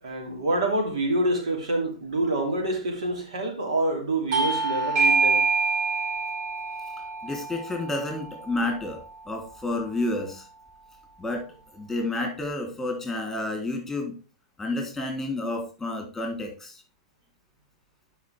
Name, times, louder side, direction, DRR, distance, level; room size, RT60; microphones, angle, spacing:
voice 1, 0.0-5.4, right 1 dB, 80° right, 2 dB, 3.3 m, -27 dB
Bell / Doorbell, 4.3-9.4, right 4 dB, 45° right, 4.1 m, -26 dB
voice 2, 7.2-10.4 11.2-11.4 11.7-14.1 14.6-16.8, left 2 dB, 5° left, 2 dB, 3.5 m, -30 dB
11.5 x 5.5 x 3.6 m, 0.34 s
hypercardioid pair, 120°, 3 cm